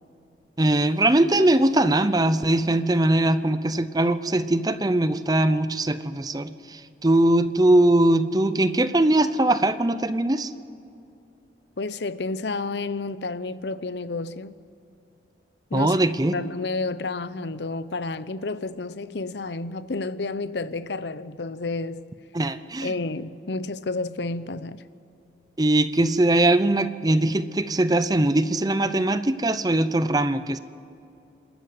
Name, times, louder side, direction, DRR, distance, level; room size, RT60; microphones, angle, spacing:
voice 1, 0.6-10.5 15.7-16.3 22.3-22.9 25.6-30.6, right 1 dB, 20° right, 0.7 m, -21 dB
voice 2, 11.8-14.6 15.7-16.0 16.3-22.0 22.8-24.8, left 3 dB, 80° left, 0.7 m, -30 dB
27.5 x 13.5 x 7.8 m
head